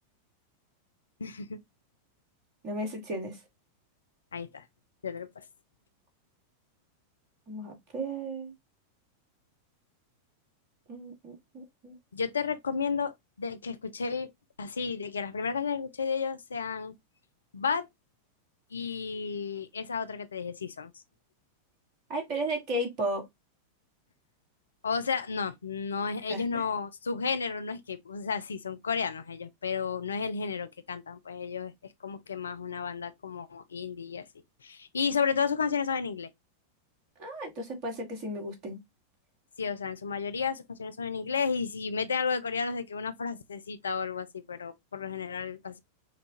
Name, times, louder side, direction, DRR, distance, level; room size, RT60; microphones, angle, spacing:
voice 1, 1.2-1.6 4.3-4.6 5.0-5.4 12.1-14.3 14.6-16.9 17.5-17.9 18.7-20.9 24.8-31.7 32.0-34.3 34.6-36.3 39.6-45.8, left 5 dB, 70° left, 0.4 m, -32 dB
voice 2, 2.6-3.4 7.5-8.5 10.9-12.0 22.1-23.3 26.3-26.6 37.2-38.8, right 1 dB, 40° right, 1.9 m, -34 dB
5.7 x 2.4 x 2.8 m
figure-of-eight pair, 90°, 0 cm